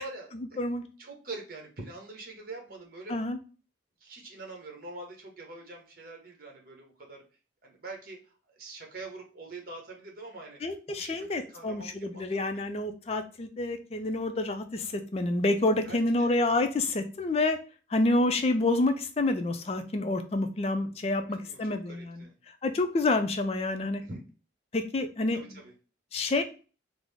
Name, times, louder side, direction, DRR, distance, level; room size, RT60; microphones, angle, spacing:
voice 1, 0.0-0.6 1.0-3.2 4.0-7.2 7.6-12.3 15.8-16.3 21.3-22.3 24.0-24.3 25.3-25.7, right 2 dB, 50° right, 1 dB, 1.0 m, -44 dB
voice 2, 10.6-17.6 17.9-22.2 22.6-24.0 24.7-25.6 26.1-26.4, left 2 dB, 35° left, 8 dB, 0.3 m, -28 dB
3.7 x 2.0 x 3.3 m, 0.35 s
head